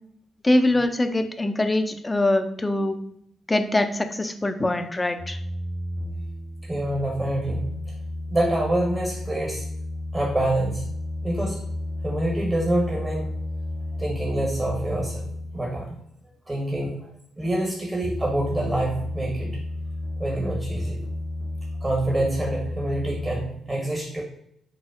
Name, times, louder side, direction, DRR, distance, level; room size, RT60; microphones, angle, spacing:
voice 1, 0.4-3.0 3.5-5.4, left 1 dB, 20° left, 7 dB, 0.4 m, -23 dB
sound 1, 5.2-15.9 18.0-23.5, left 1 dB, 80° left, 1.3 m, -32 dB
voice 2, 6.6-7.7 8.3-9.7 10.1-10.8 11.2-11.6 12.0-13.3 14.0-15.2 15.5-16.0 16.5-17.1 17.4-19.5 20.2-21.0 21.8-24.2, right 1 dB, 25° right, -1 dB, 0.8 m, -26 dB
4.8 x 2.0 x 2.4 m, 0.74 s
hypercardioid pair, 40°, 0 cm